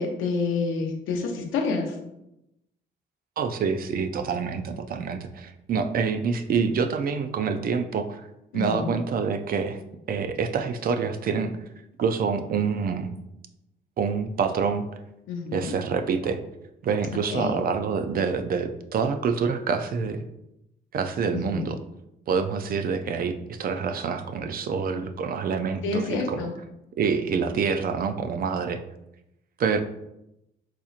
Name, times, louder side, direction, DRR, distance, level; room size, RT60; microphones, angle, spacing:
voice 1, 0.0-2.0 8.5-8.9 15.3-15.7 17.3-17.6 21.3-21.7 25.8-26.6, left 4 dB, 85° left, 3 dB, 0.7 m, -28 dB
voice 2, 3.4-8.2 8.5-9.8 10.1-11.5 12.0-13.1 14.0-14.8 15.5-16.4 16.8-20.2 20.9-21.8 22.3-26.5 27.0-28.8 29.6-29.8, right 5 dB, 50° right, 8 dB, 0.4 m, -26 dB
4.1 x 2.8 x 2.4 m, 0.86 s
cardioid pair, 90°, 20 cm